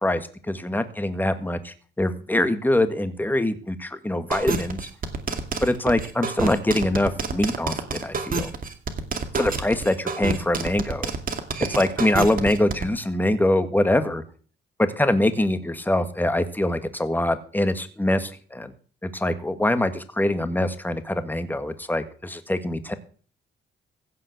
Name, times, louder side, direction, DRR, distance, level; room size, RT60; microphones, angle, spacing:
voice 1, 0.0-4.8 5.6-8.5 9.4-11.1 11.7-14.2 14.8-18.7 19.0-22.9, left 1 dB, 10° left, 10 dB, 1.7 m, -24 dB
sound 1, 4.3-12.8, right 4 dB, 45° right, 2.4 m, -28 dB
15.5 x 5.5 x 8.0 m, 0.43 s
cardioid pair, 90°, 20 cm